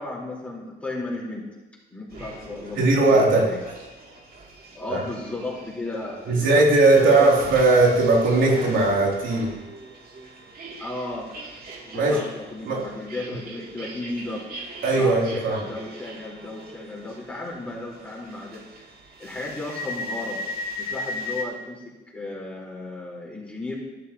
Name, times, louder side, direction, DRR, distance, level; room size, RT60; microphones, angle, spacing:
voice 1, 0.0-1.5 1.9-3.1 3.4-3.6 4.7-7.4 10.8-11.3 11.8-14.5 15.0-18.6 19.2-20.4 20.8-23.8, left 2 dB, 5° left, -5 dB, 4.0 m, -34 dB
sound 1, 2.1-21.4, left 1 dB, 50° right, 2.6 m, -39 dB
voice 2, 2.8-3.5 4.9-5.0 6.3-9.5 11.9-12.2 12.6-12.8 14.8-15.6, right 2 dB, 75° right, -3 dB, 3.0 m, -18 dB
12.5 x 11.0 x 2.9 m, 1.1 s
cardioid pair, 90°, 20 cm